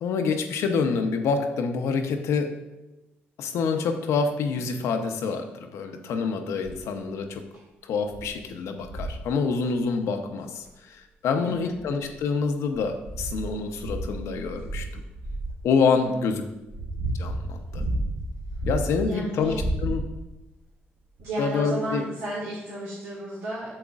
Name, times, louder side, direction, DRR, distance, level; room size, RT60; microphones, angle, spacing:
voice 1, 0.0-2.5 3.4-7.4 7.8-15.0 15.6-16.4 17.2-17.8 18.7-19.5 19.8-20.0 21.4-22.0, left 5 dB, 80° left, 6 dB, 0.8 m, -27 dB
sound 1, 6.6-6.9 7.5-7.6 8.1-8.3 8.8-9.3 10.7-10.8 11.5-12.2 12.7-15.6 16.3-19.1 19.4-20.4 21.2-21.3, right 1 dB, 70° right, 2.0 m, -32 dB
voice 2, 11.4-11.8 16.0-16.3 19.0-19.6 21.2-23.7, right 1 dB, 90° right, -7 dB, 1.9 m, -33 dB
8.9 x 6.9 x 2.4 m, 0.99 s
supercardioid pair, 65°, 5 cm